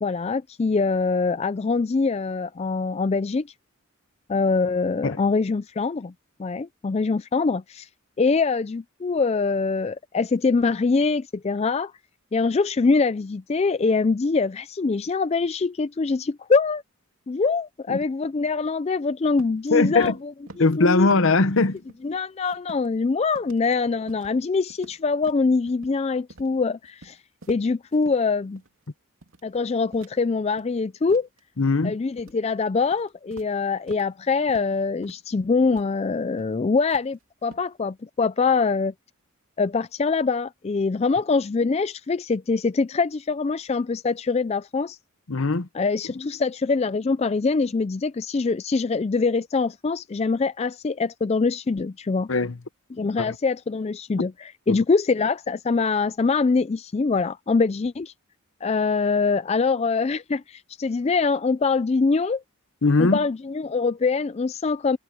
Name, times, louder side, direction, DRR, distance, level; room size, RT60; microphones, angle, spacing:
voice 1, 0.0-3.5 4.3-6.1 6.4-7.9 8.2-11.9 12.3-16.8 17.3-20.1 20.8-21.1 22.0-27.2 27.5-28.6 29.4-31.3 31.8-38.9 39.6-45.0 45.7-52.3 52.9-54.3 54.7-58.1 58.6-62.4 63.0-65.0, left 4 dB, 30° left, 0.3 m, -24 dB
sound 1, 19.3-19.7 20.0-20.8 21.1-21.5 21.8-23.0 23.4-23.8 24.1-24.4 24.7-26.0 26.3-26.5 26.8-28.2 28.6-28.8 29.2-29.5 29.9-30.8 31.1-31.8 32.2-32.4 32.8-34.1 34.5-34.8 35.0-35.3 35.7-35.9 36.3-36.5 36.9-37.7, right 2 dB, 70° right, 2.5 m, -47 dB
voice 2, 19.7-20.2 20.6-21.9 31.6-32.0 45.3-45.7 46.0-46.1 52.3-52.6 53.2-53.4 54.7-54.8 62.8-63.2, left 3 dB, 65° left, 0.9 m, -21 dB
head